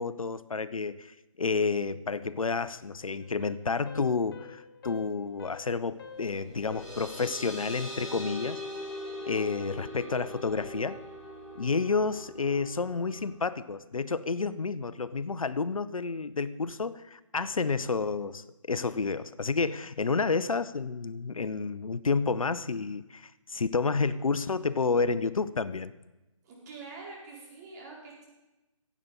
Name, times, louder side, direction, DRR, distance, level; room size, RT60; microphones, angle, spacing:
voice 1, 0.0-8.6 9.3-11.0 11.6-25.9, left 4 dB, 80° left, 16 dB, 0.7 m, -30 dB
sound 1, 3.2-8.1, left 7 dB, 45° left, 1.0 m, -49 dB
sound 2, 6.3-13.4, left 1 dB, ahead, 3.1 m, -41 dB
voice 2, 26.4-28.2, right 3 dB, 35° right, -4 dB, 4.4 m, -45 dB
16.0 x 8.4 x 5.3 m, 1.0 s
figure-of-eight pair, 145°, 17 cm